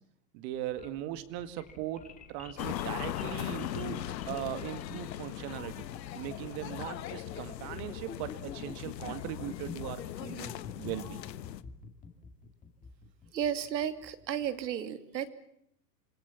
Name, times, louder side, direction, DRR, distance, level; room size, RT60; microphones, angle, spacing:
voice 1, 0.3-5.9 6.1-11.2, right 12 dB, 40° right, 12 dB, 2.2 m, -39 dB
sound 1, 0.5-14.7, left 5 dB, 15° left, 2.3 m, -49 dB
sound 2, 2.6-11.6, left 12 dB, 75° left, 1.3 m, -39 dB
voice 2, 13.3-15.3, right 9 dB, 85° right, 10 dB, 2.7 m, -33 dB
27.5 x 21.5 x 7.2 m, 0.75 s
hypercardioid pair, 145°, 50 cm